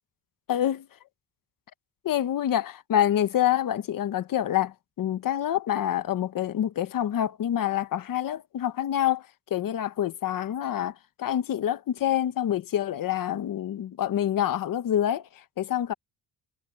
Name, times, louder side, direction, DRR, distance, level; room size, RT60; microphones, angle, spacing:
voice 1, 0.5-0.9 2.0-15.9, left 11 dB, 55° left, 1.1 m, -27 dB
cardioid pair, 160°, 40 cm